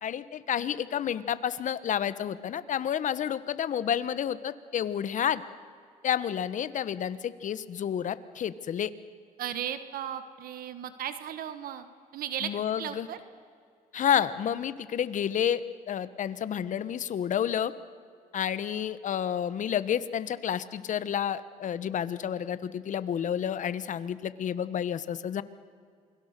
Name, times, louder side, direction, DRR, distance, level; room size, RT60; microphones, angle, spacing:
voice 1, 0.0-5.4 6.0-8.9 12.4-13.1 13.9-17.7 18.3-25.4, left 9 dB, 55° left, 15 dB, 1.1 m, -30 dB
voice 2, 9.4-11.9 12.1-12.5 12.8-13.2, right 10 dB, 75° right, 11 dB, 1.4 m, -35 dB
28.5 x 21.5 x 6.7 m, 2.2 s
cardioid pair, 95°, 15 cm